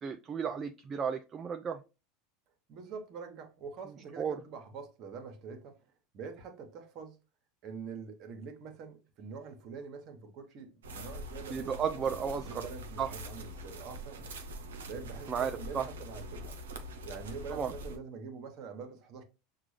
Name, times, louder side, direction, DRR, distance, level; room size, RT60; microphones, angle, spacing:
voice 1, 0.0-1.8 4.2-4.4 11.5-12.7 13.0-13.1 15.3-15.9 17.5-17.7, right 7 dB, 35° right, 0.4 m, -33 dB
voice 2, 2.7-5.8 6.1-7.2 7.6-14.3 14.8-16.5 17.0-19.2, right 5 dB, 50° right, 1.1 m, -45 dB
sound 1, 10.8-18.0, equal, 85° right, 0.7 m, -44 dB
5.8 x 2.4 x 3.3 m
hypercardioid pair, 90°, 0 cm